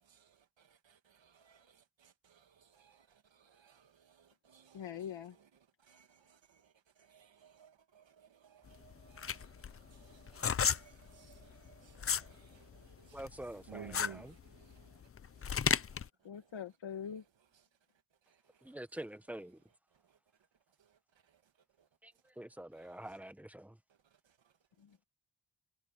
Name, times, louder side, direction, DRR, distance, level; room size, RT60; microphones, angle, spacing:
voice 1, 0.0-16.6 17.1-17.7 18.2-18.7 19.9-20.2 20.8-21.5 21.8-21.9 22.8-23.1 23.9-24.6 24.9-25.0, right 8 dB, 75° right, 2.0 m, -60 dB
voice 2, 4.7-5.3 16.2-17.2 24.8-25.0, left 8 dB, 75° left, 1.5 m, -43 dB
sound 1, 8.7-12.3 12.7-16.1, left 7 dB, 30° left, 0.4 m, -33 dB
voice 3, 13.1-14.3 18.6-19.6 22.0-23.8, right 1 dB, 5° right, 1.0 m, -46 dB
wide cardioid pair, 180°, 45 cm